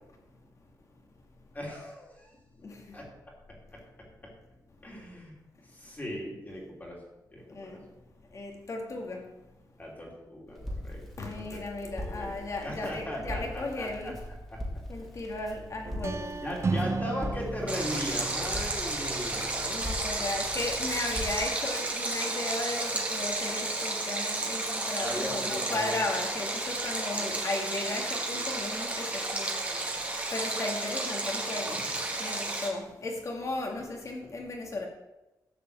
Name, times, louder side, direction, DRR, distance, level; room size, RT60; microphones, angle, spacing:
voice 1, 1.5-2.3 2.9-3.0 3.7-3.8 4.8-5.3 5.7-7.0 7.3-7.8 9.8-10.6 10.8-11.0 11.4-14.2 14.5-14.6 16.4-19.6 25.0-26.1, left 1 dB, 25° left, 3.0 m, -38 dB
voice 2, 2.6-3.0 7.5-7.8 8.3-9.3 11.2-14.2 14.9-16.3 19.6-29.5 30.3-31.9 32.2-34.9, left 2 dB, 45° left, 2.3 m, -35 dB
Crackle, 10.5-21.4, equal, 5° left, 2.7 m, -41 dB
sound 1, 15.9-21.5, right 4 dB, 40° right, 0.7 m, -36 dB
Stream, 17.7-32.7, right 2 dB, 20° right, 2.3 m, -32 dB
12.5 x 5.1 x 8.1 m
wide cardioid pair, 125°, 7 cm